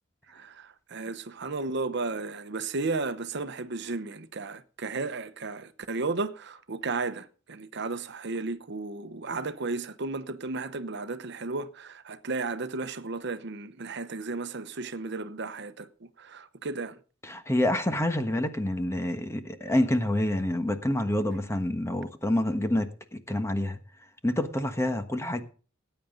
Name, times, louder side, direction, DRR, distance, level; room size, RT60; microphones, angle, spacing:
voice 1, 0.3-15.9 16.2-17.0, right 3 dB, 60° right, 0.9 m, -34 dB
voice 2, 17.2-23.8 24.2-25.4, left 1 dB, 15° left, 1.3 m, -27 dB
18.5 x 9.3 x 3.9 m
head